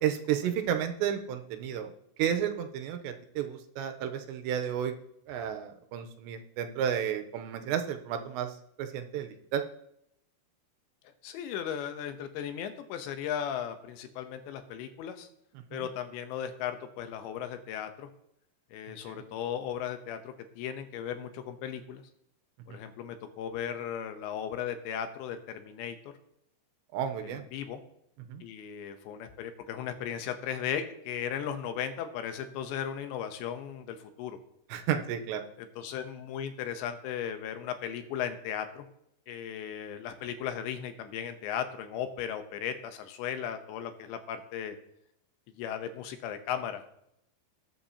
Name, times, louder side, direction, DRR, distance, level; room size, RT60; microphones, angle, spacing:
voice 1, 0.0-1.9 2.2-4.9 5.3-8.5 8.8-9.6 19.0-19.2 22.7-22.8 26.9-27.4 28.3-28.4 34.7-35.4, right 9 dB, 85° right, 6 dB, 2.9 m, -32 dB
voice 2, 11.2-15.3 15.7-18.1 18.7-22.0 22.7-26.0 27.2-27.8 28.4-34.4 35.6-38.9 39.3-44.8 45.6-46.8, left 9 dB, 80° left, 8 dB, 3.1 m, -36 dB
19.5 x 8.8 x 2.8 m, 0.77 s
omnidirectional pair, 5.2 m